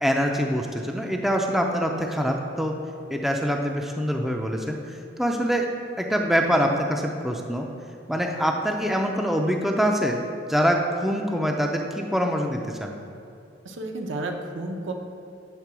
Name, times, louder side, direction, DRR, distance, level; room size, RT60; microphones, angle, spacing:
voice 1, 0.0-2.7 3.1-4.8 5.2-5.7 6.0-7.7 8.1-10.2 10.5-12.9, equal, ahead, 2 dB, 0.4 m, -24 dB
voice 2, 13.6-14.9, right 2 dB, 80° right, 3 dB, 0.9 m, -31 dB
8.2 x 3.8 x 6.0 m, 2.7 s
head